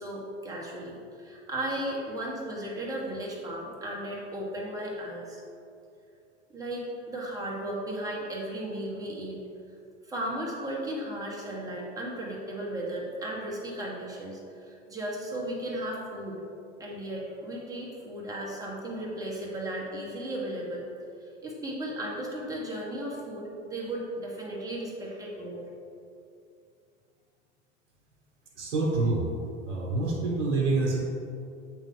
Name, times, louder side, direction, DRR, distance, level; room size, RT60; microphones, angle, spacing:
voice 1, 0.0-5.4 6.5-9.4 10.1-16.4 16.8-20.8 21.2-25.6, right 1 dB, 10° right, -4 dB, 1.3 m, -35 dB
voice 2, 28.6-29.2 29.7-31.0, right 3 dB, 70° right, -3 dB, 1.3 m, -26 dB
8.2 x 3.3 x 3.7 m, 2.5 s
hypercardioid pair, 105°, 36 cm